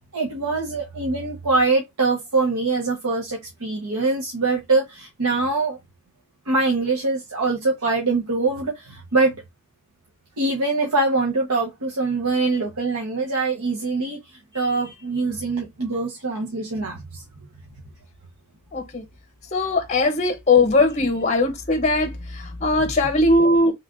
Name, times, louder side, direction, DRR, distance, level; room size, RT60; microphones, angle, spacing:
voice 1, 0.1-5.8 6.5-9.4 10.4-14.2 14.5-17.2, right 3 dB, 90° right, 0.9 m, -23 dB
voice 2, 18.7-19.0 19.5-23.7, left 2 dB, 30° left, 0.8 m, -20 dB
3.3 x 2.3 x 3.5 m
head